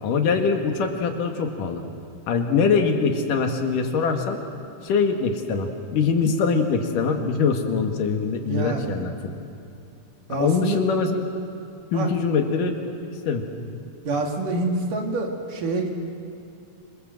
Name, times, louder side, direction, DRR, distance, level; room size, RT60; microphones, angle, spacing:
voice 1, 0.0-1.8 2.3-4.4 4.8-9.3 10.3-11.3 11.9-12.7 13.3-13.4, left 5 dB, 90° left, 4 dB, 3.5 m, -23 dB
voice 2, 8.4-9.0 10.3-10.8 11.9-12.1 14.1-15.9, right 3 dB, 85° right, 2 dB, 4.2 m, -26 dB
27.5 x 25.5 x 7.8 m, 2.5 s
omnidirectional pair, 3.6 m